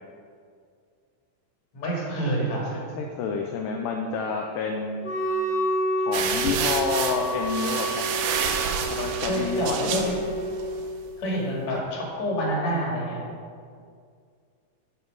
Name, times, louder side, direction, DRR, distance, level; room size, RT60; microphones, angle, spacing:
voice 1, 1.7-2.9 9.3-10.2 11.2-13.2, equal, 55° left, -3 dB, 3.2 m, -27 dB
voice 2, 3.0-5.1 6.0-8.2 8.9-10.3, left 5 dB, 80° left, 2 dB, 2.2 m, -29 dB
Wind instrument woodwind instrument, 5.0-10.9, right 1 dB, 30° left, 1.9 m, -29 dB
sound 1, 6.1-10.8, right 7 dB, 80° right, 2.3 m, -29 dB
14.0 x 5.6 x 4.7 m, 2.2 s
omnidirectional pair, 4.0 m